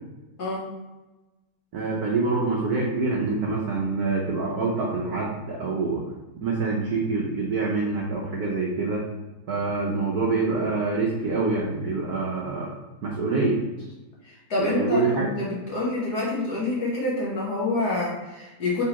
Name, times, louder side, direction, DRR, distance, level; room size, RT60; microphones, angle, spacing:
voice 1, 1.7-6.0 6.4-9.0 9.5-12.7 13.0-13.6 14.6-15.3, right 3 dB, 75° right, -3 dB, 0.8 m, -26 dB
voice 2, 14.2-18.8, left 2 dB, 55° left, -5 dB, 1.3 m, -27 dB
4.2 x 3.6 x 2.9 m, 1.1 s
omnidirectional pair, 2.4 m